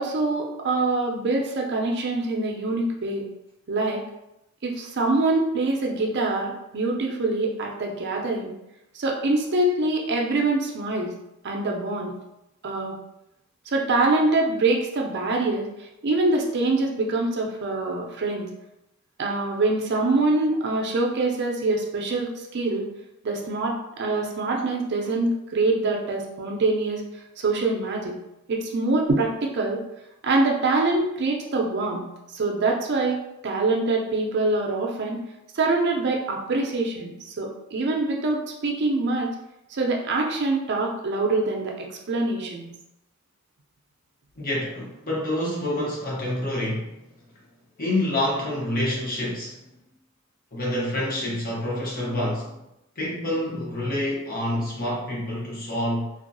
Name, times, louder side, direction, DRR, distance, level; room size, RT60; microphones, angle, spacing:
voice 1, 0.0-3.3 3.7-4.0 4.6-8.5 8.9-11.1 11.4-12.1 12.6-13.0 13.7-15.7 16.0-18.5 19.2-22.8 23.2-27.0 27.4-28.2 28.5-29.8 30.2-32.1 32.3-33.2 33.4-35.2 35.5-39.3 39.7-42.7, right 2 dB, 55° right, 0 dB, 0.5 m, -24 dB
voice 2, 44.4-46.9 47.8-49.6 50.5-52.6 53.0-56.1, left 1 dB, 45° left, -4 dB, 0.9 m, -27 dB
2.6 x 2.3 x 2.6 m, 0.88 s
head